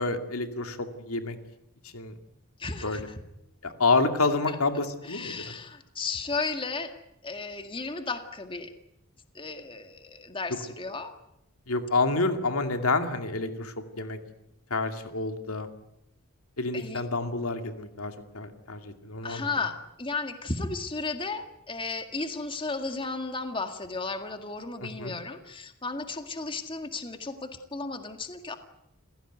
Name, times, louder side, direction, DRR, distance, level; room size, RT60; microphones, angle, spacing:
voice 1, 0.0-1.4 1.8-2.1 2.8-3.1 3.6-5.5 11.7-14.2 14.7-15.7 16.6-19.5 24.8-25.2, left 3 dB, 85° left, 7 dB, 2.4 m, -28 dB
voice 2, 2.6-3.0 4.5-4.6 5.1-6.9 7.2-8.7 9.4-11.1 16.7-17.0 19.2-28.6, left 3 dB, 25° left, 7 dB, 1.8 m, -34 dB
28.5 x 16.5 x 9.4 m, 0.84 s
head